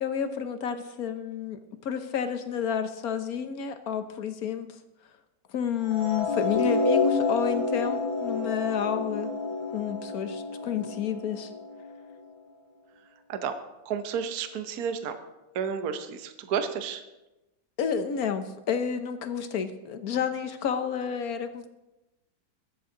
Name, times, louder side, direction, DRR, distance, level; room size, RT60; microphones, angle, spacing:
voice 1, 0.0-4.8 5.5-9.3 9.7-11.5 17.8-21.7, left 7 dB, 55° left, 9 dB, 1.2 m, -30 dB
sound 1, 5.9-12.1, left 4 dB, 15° left, 2.8 m, -29 dB
voice 2, 13.9-15.2 15.5-17.0, right 7 dB, 55° right, 8 dB, 1.2 m, -31 dB
22.0 x 8.0 x 3.9 m, 1.0 s
omnidirectional pair, 2.2 m